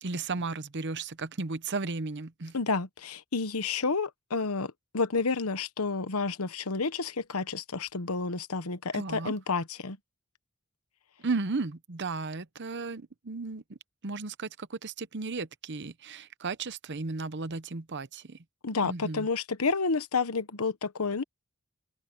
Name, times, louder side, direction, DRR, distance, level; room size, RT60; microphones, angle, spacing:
voice 1, 0.0-2.6 8.9-9.3 11.2-13.8 14.0-18.4 18.8-19.3, right 3 dB, 55° right, 0.9 m, -34 dB
voice 2, 2.5-10.0 18.6-21.2, left 4 dB, 80° left, 1.1 m, -30 dB
head